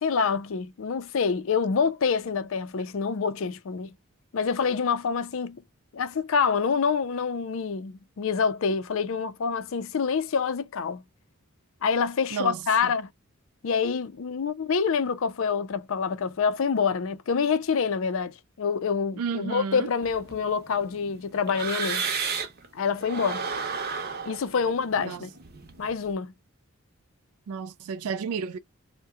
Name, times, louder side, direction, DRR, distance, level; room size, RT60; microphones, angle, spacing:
voice 1, 0.0-3.9 4.3-5.6 5.9-11.0 11.8-13.1 13.6-22.0 22.7-23.4 24.3-25.3 25.8-26.3, left 5 dB, 65° left, 0.4 m, -26 dB
voice 2, 12.3-12.9 19.2-19.9 25.0-25.2 27.5-28.6, right 6 dB, 90° right, 0.3 m, -32 dB
sound 1, 20.0-22.7 23.0-26.1, right 5 dB, 45° right, 0.7 m, -33 dB
2.7 x 2.1 x 3.5 m
head